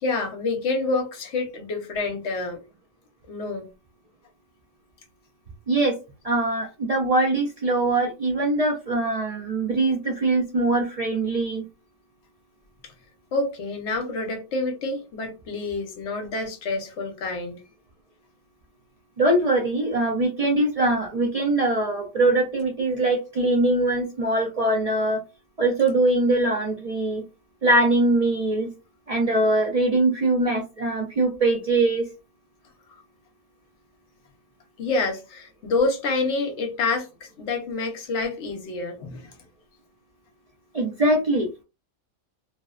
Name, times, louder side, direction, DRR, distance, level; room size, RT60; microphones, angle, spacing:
voice 1, 0.0-2.6 3.3-3.7 12.8-12.9 13.3-17.6 34.8-39.3, left 3 dB, 65° left, 0.9 m, -28 dB
voice 2, 6.2-11.6 19.2-25.2 25.6-27.2 27.6-28.7 29.1-32.0 40.7-41.6, right 2 dB, 70° right, 0.3 m, -22 dB
2.6 x 2.0 x 2.3 m
omnidirectional pair, 1.4 m